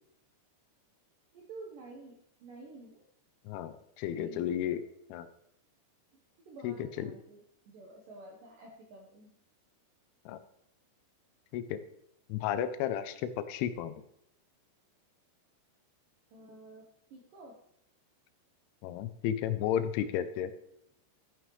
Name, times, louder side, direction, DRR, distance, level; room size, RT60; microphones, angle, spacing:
voice 1, 1.3-3.0 4.1-4.8 6.1-9.4 16.3-17.6, right 2 dB, 65° right, -1 dB, 2.2 m, -51 dB
voice 2, 3.5-4.8 5.1-5.3 6.6-7.1 10.3-10.4 11.5-11.8 12.3-13.9 18.8-20.5, left 10 dB, 85° left, 11 dB, 3.1 m, -33 dB
12.5 x 9.2 x 3.2 m, 0.77 s
omnidirectional pair, 5.5 m